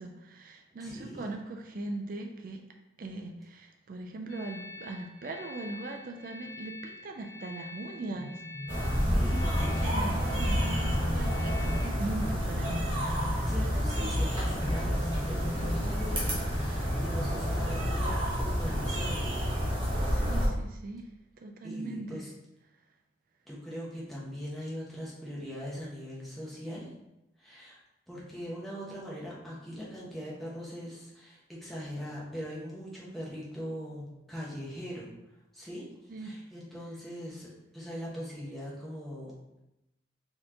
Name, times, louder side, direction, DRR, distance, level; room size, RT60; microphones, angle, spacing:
voice 1, 0.0-2.6 3.0-13.5 20.0-21.1 21.4-22.2 36.1-36.3, right 2 dB, 45° right, 3 dB, 0.4 m, -40 dB
voice 2, 0.8-1.3 9.0-9.9 13.5-19.4 19.7-20.3 21.6-22.3 23.4-26.9 27.4-27.8 28.1-35.1 35.5-35.9 36.2-39.6, equal, ahead, -6 dB, 0.9 m, -41 dB
sound 1, 4.3-11.9, left 3 dB, 80° left, 0.7 m, -46 dB
sound 2, 8.1-18.5, equal, 25° left, 0.5 m, -40 dB
sound 3, 8.7-20.5, equal, 25° right, 1.0 m, -29 dB
4.2 x 2.9 x 3.7 m, 0.90 s
head